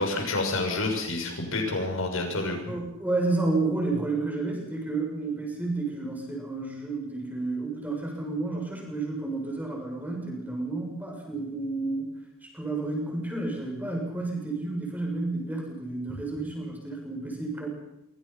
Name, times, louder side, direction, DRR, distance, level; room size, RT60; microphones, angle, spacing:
voice 1, 0.0-2.6, left 2 dB, 80° left, 3 dB, 6.6 m, -28 dB
voice 2, 2.7-12.1 12.4-17.7, right 2 dB, 10° right, -1 dB, 7.2 m, -31 dB
27.0 x 25.0 x 5.9 m, 0.84 s
head